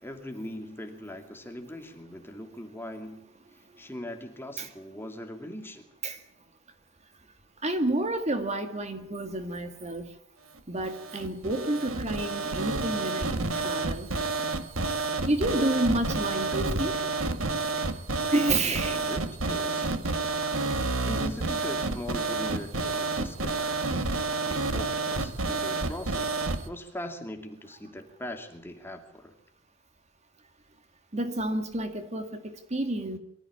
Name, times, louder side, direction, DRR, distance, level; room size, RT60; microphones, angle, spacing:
voice 1, 0.0-3.2 3.8-5.9 18.7-19.9 21.0-24.0 24.5-29.3, left 1 dB, 10° left, 2.5 m, -40 dB
voice 2, 7.6-10.0 10.7-14.1 15.2-17.0 18.3-19.0 31.1-32.2 32.7-33.2, right 2 dB, 35° right, 1.9 m, -29 dB
sound 1, 10.8-26.6, right 3 dB, 80° right, 1.8 m, -30 dB
24.0 x 14.0 x 8.5 m
head